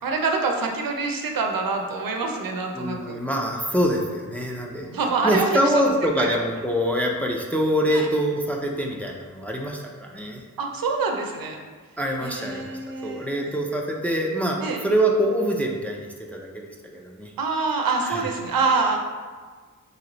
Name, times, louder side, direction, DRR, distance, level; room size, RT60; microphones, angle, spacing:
voice 1, 0.0-3.2 4.9-6.4 7.9-8.1 10.6-11.6 12.2-13.3 14.6-14.8 17.4-19.0, right 4 dB, 85° right, 2 dB, 0.6 m, -26 dB
voice 2, 2.7-4.9 5.2-10.4 12.0-14.6 14.8-17.3 18.0-18.2, equal, 5° left, 0 dB, 0.4 m, -25 dB
3.1 x 3.0 x 3.8 m, 1.4 s
wide cardioid pair, 100°, 34 cm